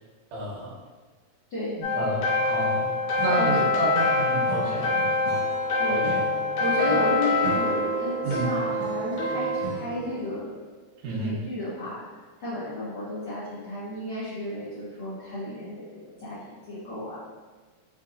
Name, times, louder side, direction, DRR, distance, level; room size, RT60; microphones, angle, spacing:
voice 1, 0.3-0.7 1.8-2.9 3.2-4.9 5.9-6.2 8.2-8.5 11.0-11.4, right 1 dB, 70° right, -5 dB, 1.7 m, -30 dB
sound 1, 1.8-9.6, left 2 dB, 65° left, 2.5 m, -25 dB
Acoustic guitar / Strum, 3.2-10.4, right 4 dB, 90° right, 2.6 m, -39 dB
voice 2, 3.4-3.8 5.8-6.2 6.6-10.5 11.2-12.0 12.4-17.2, left 1 dB, 85° left, -13 dB, 1.2 m, -32 dB
5.8 x 2.8 x 2.6 m, 1.4 s
omnidirectional pair, 4.6 m